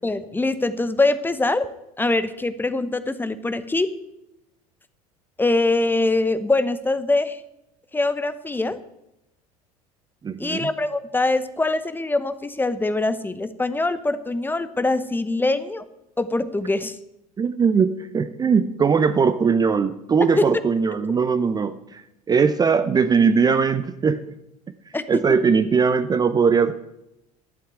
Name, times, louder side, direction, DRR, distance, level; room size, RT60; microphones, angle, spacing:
voice 1, 0.0-1.7 2.0-3.9 5.4-7.4 7.9-8.8 10.4-15.9 16.2-17.0 20.4-20.5 21.1-21.2 24.9-25.4, left 2 dB, 10° left, 13 dB, 0.9 m, -23 dB
voice 2, 10.2-10.7 17.4-24.2 25.1-26.7, right 5 dB, 20° right, 12 dB, 0.6 m, -20 dB
12.0 x 7.7 x 9.0 m, 0.85 s
figure-of-eight pair, 70°, 20 cm